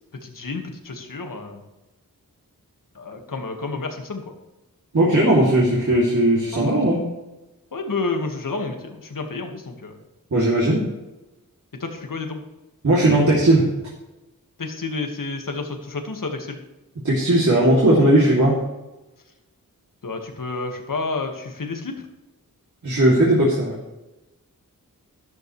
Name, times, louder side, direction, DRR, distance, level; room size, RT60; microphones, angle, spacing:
voice 1, 0.2-1.6 2.9-4.2 6.5-6.8 7.7-10.0 11.8-12.4 14.6-16.6 20.0-22.1, left 3 dB, 65° left, 4 dB, 1.8 m, -30 dB
voice 2, 4.9-7.0 10.3-10.8 12.8-13.7 17.0-18.6 22.8-23.7, right 1 dB, 55° right, -5 dB, 2.9 m, -17 dB
12.5 x 12.5 x 3.3 m, 1.0 s
wide cardioid pair, 85°, 35 cm